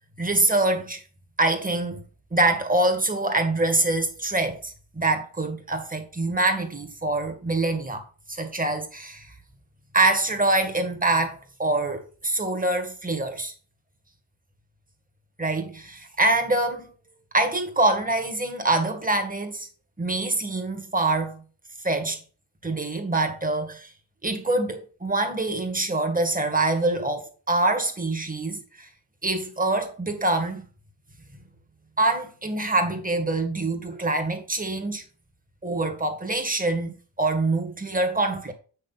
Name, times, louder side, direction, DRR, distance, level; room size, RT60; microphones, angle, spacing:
voice 1, 0.2-1.0 1.4-2.0 2.3-8.0 8.3-9.3 9.9-13.5 15.4-16.9 17.3-19.7 20.0-21.4 21.8-22.2 22.6-23.9 24.2-28.9 29.2-30.6 32.0-35.0 35.6-38.5, right 2 dB, 15° right, 2.0 m, -25 dB
8.4 x 6.5 x 4.1 m
wide cardioid pair, 120°, 49 cm